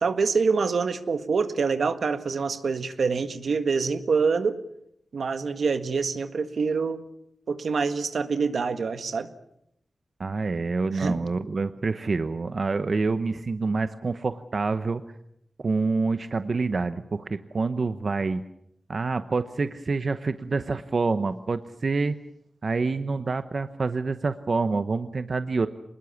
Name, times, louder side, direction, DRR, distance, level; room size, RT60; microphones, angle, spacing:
voice 1, 0.0-4.6 5.1-7.0 7.5-9.3 10.9-11.2, right 5 dB, 80° right, 1.7 m, -26 dB
voice 2, 10.2-15.0 15.6-18.4 18.9-22.2 22.6-25.7, right 4 dB, 50° right, 0.9 m, -27 dB
26.0 x 20.5 x 7.2 m
wide cardioid pair, 115°, 0 cm